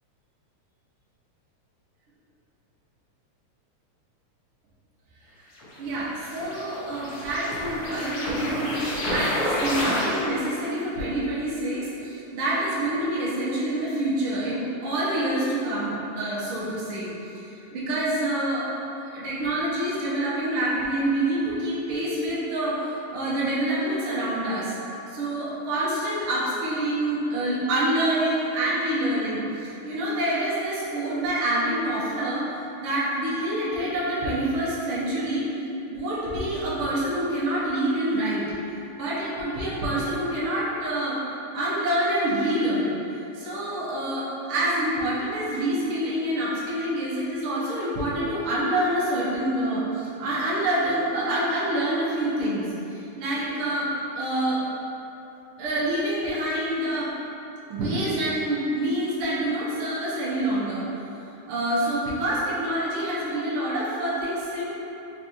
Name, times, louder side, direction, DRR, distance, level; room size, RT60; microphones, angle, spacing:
sound 1, 5.6-10.5, equal, 75° left, 1.2 m, -30 dB
voice 1, 5.8-18.7 19.0-24.7 25.1-32.5 32.8-35.5 35.9-38.4 39.0-41.2 41.5-42.9 43.3-53.9 54.2-54.6 55.6-57.1 57.7-60.9 61.5-64.7, right 1 dB, 70° right, -8 dB, 1.3 m, -27 dB
4.5 x 3.9 x 2.9 m, 2.9 s
omnidirectional pair, 3.4 m